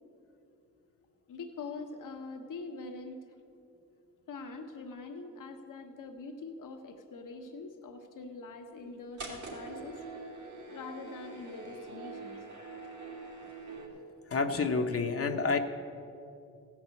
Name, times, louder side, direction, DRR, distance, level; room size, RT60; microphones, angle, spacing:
voice 1, 1.3-3.3 4.3-10.0 10.7-12.4, left 3 dB, 85° left, 4 dB, 1.3 m, -44 dB
sound 1, 9.2-13.9, right 3 dB, 70° right, 3.1 m, -44 dB
voice 2, 14.3-15.6, left 4 dB, 50° left, 4 dB, 0.9 m, -29 dB
16.0 x 6.1 x 8.3 m, 2.6 s
cardioid pair, 85°, 31 cm